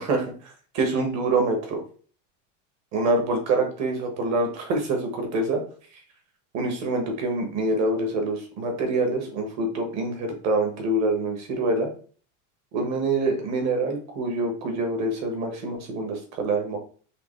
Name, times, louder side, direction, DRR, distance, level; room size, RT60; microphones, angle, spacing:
voice 1, 0.7-1.8 2.9-5.6 6.5-11.9 12.7-16.8, right 2 dB, 40° right, 4 dB, 1.4 m, -25 dB
5.1 x 2.9 x 3.2 m, 0.42 s
supercardioid pair, 145°, 39 cm